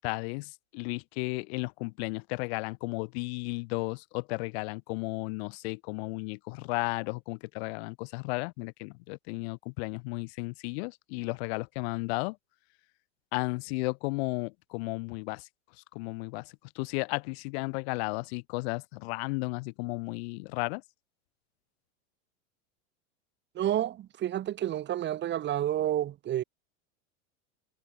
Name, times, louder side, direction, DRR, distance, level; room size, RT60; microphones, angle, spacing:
voice 1, 0.0-12.4 13.3-15.4 15.9-20.8, left 29 dB, 55° left, 2.1 m, -34 dB
voice 2, 23.5-26.4, right 12 dB, 30° right, 3.3 m, -30 dB
supercardioid pair, 145°, 38 cm